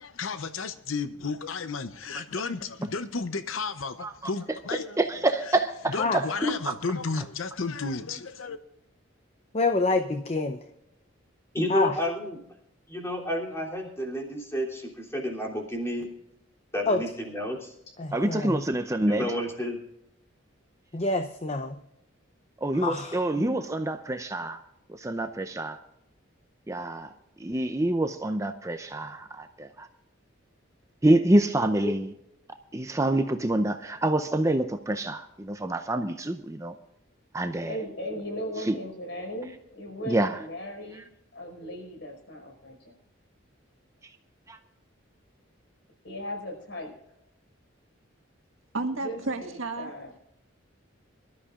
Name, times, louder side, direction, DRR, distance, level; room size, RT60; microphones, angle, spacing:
voice 1, 0.0-4.9 5.9-8.6, left 4 dB, 80° left, 0.7 m, -33 dB
voice 2, 4.0-7.3 18.1-19.4 22.6-24.6 24.9-25.8 26.7-27.1 27.4-29.9 31.0-32.1 32.7-36.7 37.3-37.9 38.6-38.8 40.0-40.4 44.5-44.6, right 1 dB, 15° right, 0.5 m, -27 dB
voice 3, 9.5-10.6 11.7-12.0 16.9-17.0 18.0-18.6 20.9-21.8 22.8-23.2, left 3 dB, 30° left, 0.7 m, -27 dB
voice 4, 11.5-12.4 12.9-16.1 16.7-17.7 19.1-19.8 31.8-31.9, equal, 15° left, 3.1 m, -30 dB
voice 5, 37.7-41.1 41.3-42.9 46.0-46.9 49.0-50.1, equal, 65° left, 5.1 m, -37 dB
voice 6, 48.7-49.9, right 3 dB, 85° right, 1.8 m, -31 dB
24.0 x 13.0 x 2.5 m
head